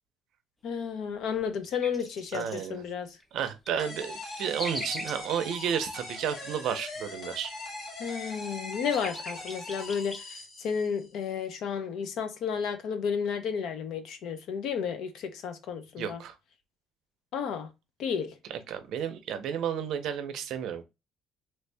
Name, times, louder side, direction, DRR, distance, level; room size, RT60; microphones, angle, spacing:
voice 1, 0.6-3.1 8.0-16.2 17.3-17.7 18.0-18.4, left 6 dB, 60° left, 0.6 m, -32 dB
sound 1, 1.4-2.7 3.2-5.2 6.7-10.2, left 1 dB, 10° left, 0.5 m, -41 dB
voice 2, 2.3-2.8 3.3-7.5 16.0-16.4 18.5-20.8, right 8 dB, 60° right, 0.5 m, -32 dB
sound 2, 3.8-11.1, left 2 dB, 40° left, 1.0 m, -41 dB
3.2 x 2.7 x 3.3 m
cardioid pair, 170°, 0 cm